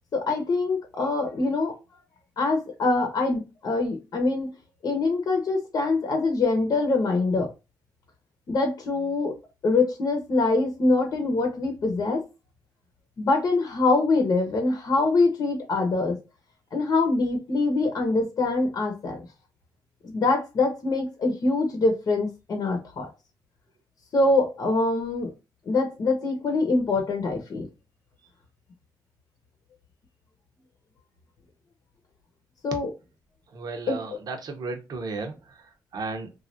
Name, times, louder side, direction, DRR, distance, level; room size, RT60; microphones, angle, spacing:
voice 1, 0.1-1.8 2.4-4.5 4.8-7.5 8.5-9.3 9.6-12.2 13.2-16.2 16.7-19.2 20.0-23.1 24.1-25.3 25.7-27.7 32.6-32.9 33.9-34.0, left 3 dB, 50° left, 0.8 m, -24 dB
voice 2, 33.5-36.3, right 3 dB, 60° right, 0.8 m, -35 dB
3.1 x 2.4 x 2.6 m
cardioid pair, 120°, 8 cm